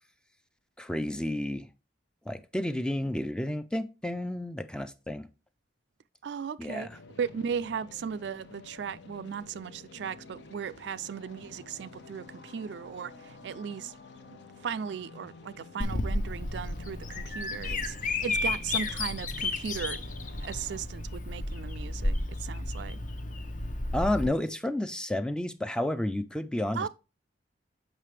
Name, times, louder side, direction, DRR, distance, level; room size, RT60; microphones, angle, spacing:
voice 1, 0.8-1.7 2.3-5.3 6.6-7.0 23.9-26.9, left 1 dB, 5° left, 0.4 m, -31 dB
voice 2, 6.2-6.9 7.2-13.9 14.6-20.0 20.4-23.0 26.8-26.9, right 7 dB, 70° right, 0.3 m, -37 dB
sound 1, 6.9-20.8, left 3 dB, 75° left, 1.0 m, -50 dB
Bird vocalization bird call bird song, 15.8-24.3, left 2 dB, 45° left, 0.7 m, -32 dB
7.4 x 5.6 x 3.3 m
head